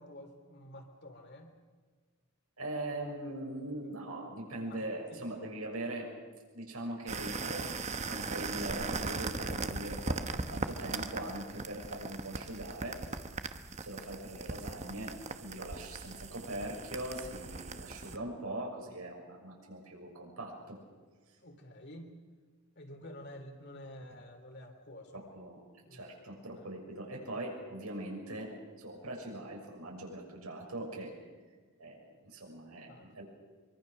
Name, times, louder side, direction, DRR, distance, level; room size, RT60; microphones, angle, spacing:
voice 1, 0.0-1.5 4.2-4.8 5.1-5.5 21.4-22.2 22.7-25.2 25.8-26.1 26.5-26.7 32.9-33.1, left 1 dB, 50° left, 4 dB, 3.2 m, -50 dB
voice 2, 2.6-6.1 6.5-7.7 8.1-13.0 13.8-20.8 25.1-25.6 25.9-31.1 31.8-33.2, right 1 dB, 80° right, 0 dB, 6.3 m, -41 dB
sound 1, 7.1-18.2, right 3 dB, 30° right, 1.0 m, -39 dB
24.0 x 24.0 x 6.6 m, 1.5 s
head